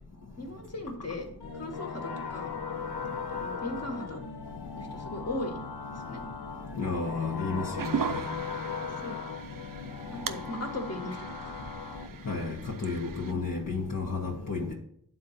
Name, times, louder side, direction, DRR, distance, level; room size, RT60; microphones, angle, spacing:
voice 1, 0.4-1.3 1.6-2.5 3.3-4.2 4.8-5.6 5.9-6.2 9.0-9.2 10.1-11.6 13.3-13.4, left 1 dB, 40° left, 1.6 m, -38 dB
sound 1, 1.4-12.1, left 5 dB, 75° left, 1.0 m, -38 dB
voice 2, 6.8-8.2 12.3-14.7, left 4 dB, 55° left, 1.3 m, -32 dB
sound 2, 7.8-13.3, right 8 dB, 60° right, 0.6 m, -39 dB
9.3 x 3.9 x 5.8 m
wide cardioid pair, 55°, 38 cm